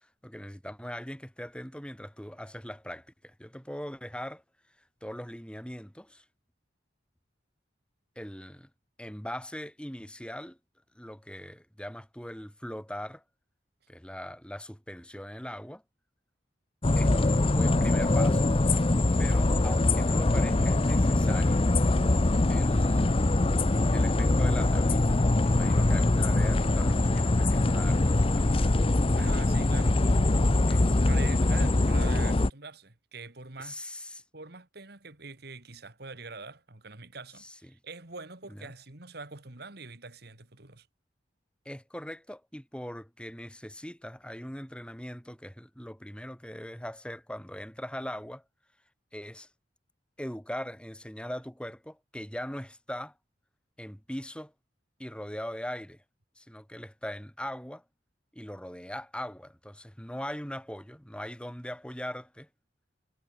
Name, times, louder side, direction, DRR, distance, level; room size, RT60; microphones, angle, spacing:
voice 1, 0.2-4.4 5.0-6.2 8.2-8.7 9.0-10.6 10.9-13.2 13.9-15.8 17.0-18.5 19.2-21.6 22.5-23.2 23.9-28.7 30.7-31.0 33.6-34.2 37.4-37.7 38.5-38.7 41.6-48.4 49.1-49.5 50.2-53.1 53.8-54.5 55.0-56.0 56.4-57.8 58.3-62.5, equal, 5° left, 6.4 m, -40 dB
sound 1, 16.8-32.5, left 2 dB, 30° left, 0.6 m, -23 dB
voice 2, 29.1-30.0 31.1-33.8 34.3-40.9, right 3 dB, 60° right, 2.5 m, -44 dB
head